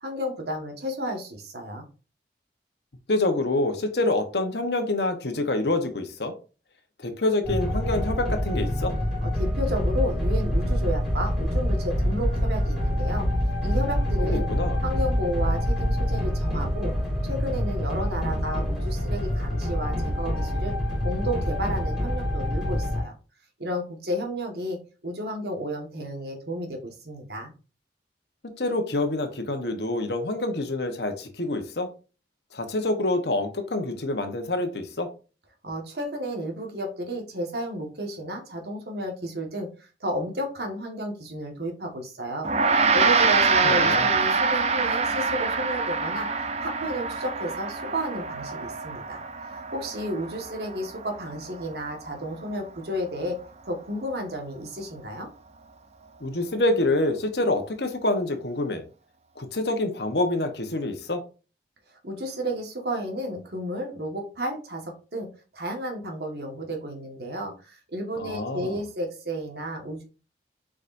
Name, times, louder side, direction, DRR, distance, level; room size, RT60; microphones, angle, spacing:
voice 1, 0.0-1.8 9.2-13.3 13.6-14.5 14.8-16.9 17.2-20.7 21.0-23.2 23.6-24.8 25.0-27.5 35.6-39.7 40.0-46.3 46.6-49.2 49.7-53.4 53.6-55.3 62.0-65.3 65.5-70.0, equal, 70° right, 1.7 m, -32 dB
voice 2, 3.1-6.3 7.0-9.0 14.2-14.8 28.6-31.9 32.5-35.1 43.6-44.1 56.2-58.8 59.4-61.2 68.2-68.8, left 2 dB, 75° left, 1.2 m, -26 dB
sound 1, 7.4-23.0, equal, 5° right, 3.0 m, -26 dB
Gong, 42.4-52.0, right 4 dB, 35° right, 0.5 m, -25 dB
7.2 x 4.9 x 2.7 m
head